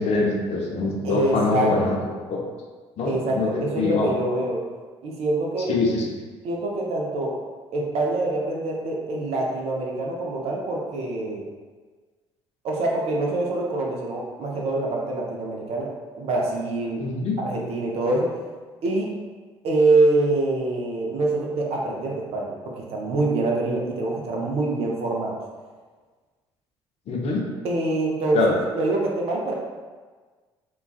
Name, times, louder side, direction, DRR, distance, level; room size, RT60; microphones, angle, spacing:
voice 1, 0.0-2.4 3.0-4.1 5.7-6.0 17.0-17.3 27.1-27.4 28.3-28.6, left 3 dB, 45° left, -2 dB, 0.5 m, -24 dB
voice 2, 1.0-2.0 3.1-4.6 5.0-5.7 6.4-7.4 7.7-11.4 12.6-17.0 17.4-18.4 18.8-19.1 19.6-25.3 27.6-29.5, right 2 dB, 45° right, -1 dB, 0.5 m, -25 dB
2.3 x 2.2 x 2.3 m, 1.4 s
figure-of-eight pair, 50°, 14 cm